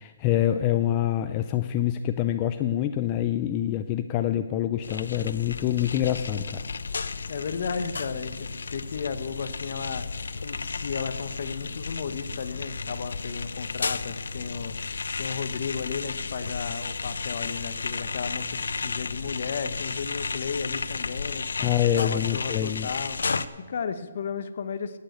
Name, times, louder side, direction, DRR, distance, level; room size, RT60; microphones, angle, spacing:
voice 1, 0.0-6.6 21.6-22.9, left 11 dB, 20° left, 9 dB, 0.3 m, -26 dB
sound 1, 4.8-23.5, left 4 dB, 80° left, 0.7 m, -33 dB
voice 2, 7.3-10.0 10.4-21.7 22.0-25.0, left 6 dB, 45° left, 11 dB, 0.8 m, -34 dB
11.5 x 8.5 x 7.9 m, 1.5 s
hypercardioid pair, 175°, 0 cm